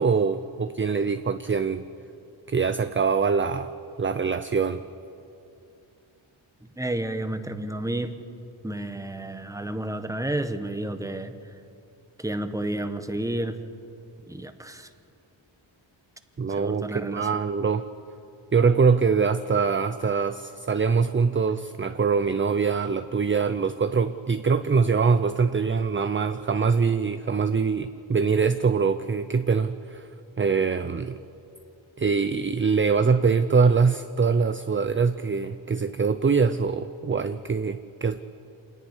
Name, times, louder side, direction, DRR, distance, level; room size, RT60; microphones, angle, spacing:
voice 1, 0.0-1.9 2.5-3.7 4.0-4.8 16.4-17.9 18.5-30.1 30.4-31.2 32.0-38.2, right 5 dB, 25° right, 10 dB, 0.5 m, -23 dB
voice 2, 6.8-8.2 8.6-11.3 12.2-13.6 14.3-14.9 16.5-17.3, right 1 dB, 5° right, 9 dB, 1.0 m, -31 dB
27.5 x 10.5 x 9.8 m, 2.6 s
wide cardioid pair, 135°, 49 cm